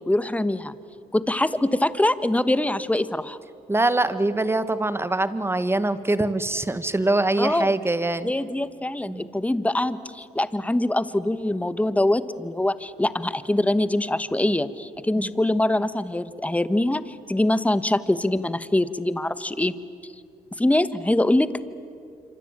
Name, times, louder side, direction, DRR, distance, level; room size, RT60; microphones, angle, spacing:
voice 1, 0.1-0.7 1.1-3.4 7.4-7.7 8.2-19.7 20.6-21.5, left 1 dB, 10° left, 14 dB, 1.3 m, -23 dB
voice 2, 3.7-8.3 9.1-9.3 15.2-15.3, right 2 dB, 15° right, 12 dB, 1.6 m, -23 dB
26.5 x 25.0 x 8.9 m, 2.4 s
supercardioid pair, 60°, 15 cm